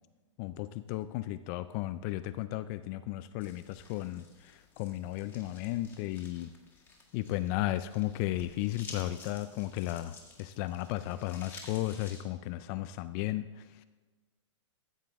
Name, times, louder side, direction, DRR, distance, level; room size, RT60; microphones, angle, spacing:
voice 1, 0.4-6.5 7.1-13.8, left 15 dB, 35° left, 13 dB, 0.4 m, -35 dB
sound 1, 3.4-12.2, left 3 dB, 10° left, 1.7 m, -52 dB
13.5 x 7.3 x 3.5 m, 1.3 s
hypercardioid pair, 140°, 16 cm